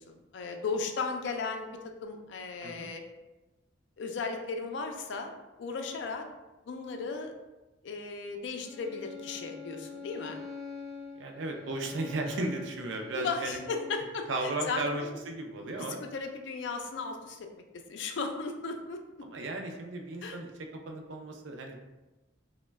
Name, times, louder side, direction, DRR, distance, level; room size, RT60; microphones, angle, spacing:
voice 1, 0.0-1.7 2.0-3.0 4.0-5.3 5.6-6.3 6.7-7.3 7.8-10.4 13.1-15.1 16.0-19.2 20.2-20.4, left 4 dB, 60° left, 4 dB, 0.4 m, -36 dB
Bowed string instrument, 8.6-14.1, left 5 dB, ahead, 0.6 m, -45 dB
voice 2, 11.2-13.6 14.3-16.0 19.2-21.8, right 2 dB, 65° right, 3 dB, 0.4 m, -35 dB
3.0 x 2.1 x 3.3 m, 1.1 s
head